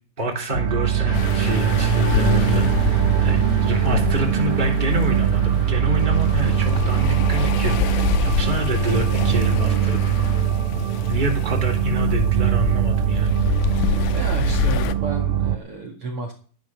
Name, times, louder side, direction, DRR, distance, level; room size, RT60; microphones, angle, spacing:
voice 1, 0.2-10.5 10.7-13.3 13.9-14.0, equal, 15° right, 1 dB, 3.1 m, -27 dB
sound 1, 0.5-15.6, right 10 dB, 65° right, 1.5 m, -21 dB
sound 2, 1.1-14.9, left 13 dB, 85° left, 2.4 m, -28 dB
sound 3, 1.1-10.4, left 2 dB, 65° left, 4.5 m, -37 dB
voice 2, 14.1-16.3, right 3 dB, 50° right, 1 dB, 2.8 m, -32 dB
13.5 x 10.5 x 6.2 m, 0.41 s
omnidirectional pair, 3.7 m